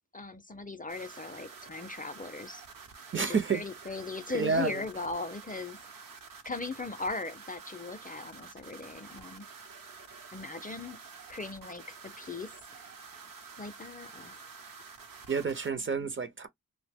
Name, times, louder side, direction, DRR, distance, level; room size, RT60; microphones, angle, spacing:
voice 1, 0.1-2.6 3.1-5.8 6.4-9.5 10.3-11.0 11.3-12.5 13.6-14.4 16.0-16.1, left 3 dB, 25° left, 0.4 m, -38 dB
sound 1, 0.9-15.7, right 5 dB, 75° right, 0.7 m, -49 dB
voice 2, 3.1-3.6 4.3-4.8 15.3-16.5, right 5 dB, 35° right, 0.5 m, -29 dB
2.7 x 2.1 x 3.4 m
wide cardioid pair, 90°, 33 cm